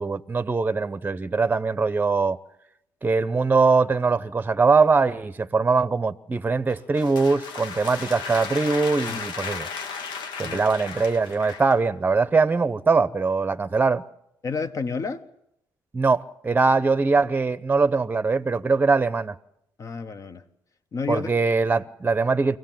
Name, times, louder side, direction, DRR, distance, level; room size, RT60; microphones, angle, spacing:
voice 1, 0.0-2.4 3.0-9.7 10.4-14.0 15.9-19.3 21.1-22.6, right 4 dB, 20° right, 0.8 m, -22 dB
sound 1, 6.7-11.8, left 5 dB, 75° left, 1.2 m, -35 dB
voice 2, 14.4-15.2 19.8-20.4 20.9-21.3, left 4 dB, 45° left, 1.3 m, -30 dB
24.0 x 17.5 x 7.5 m
cardioid pair, 80°, 8 cm